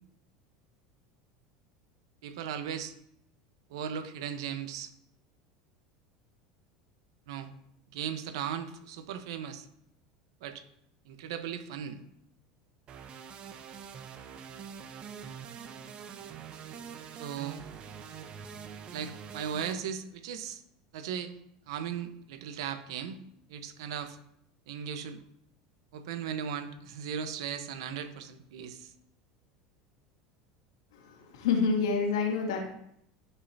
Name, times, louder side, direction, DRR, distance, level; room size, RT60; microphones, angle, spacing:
voice 1, 2.2-2.9 3.7-4.9 7.3-7.5 7.9-9.7 10.4-10.6 11.1-12.0 17.2-17.6 18.9-20.6 20.9-21.3 21.7-23.2 23.5-24.2 24.7-25.2 25.9-28.9, right 8 dB, 80° right, 8 dB, 1.1 m, -37 dB
sound 1, 12.9-19.7, right 7 dB, 40° right, 1.0 m, -45 dB
voice 2, 31.0-32.7, left 5 dB, 85° left, 0 dB, 2.4 m, -28 dB
16.5 x 5.6 x 2.9 m, 0.73 s
supercardioid pair, 105°, 3 cm